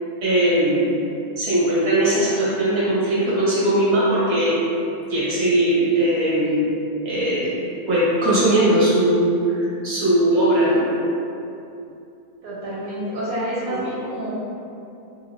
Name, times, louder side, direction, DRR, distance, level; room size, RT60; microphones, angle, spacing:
voice 1, 0.2-1.0 1.4-4.6 5.1-6.7 7.0-7.5 7.9-10.9 13.6-13.8, right 1 dB, 50° right, -9 dB, 1.2 m, -19 dB
voice 2, 12.4-14.3, equal, 80° right, -8 dB, 1.1 m, -28 dB
3.1 x 2.4 x 3.1 m, 2.7 s
omnidirectional pair, 1.5 m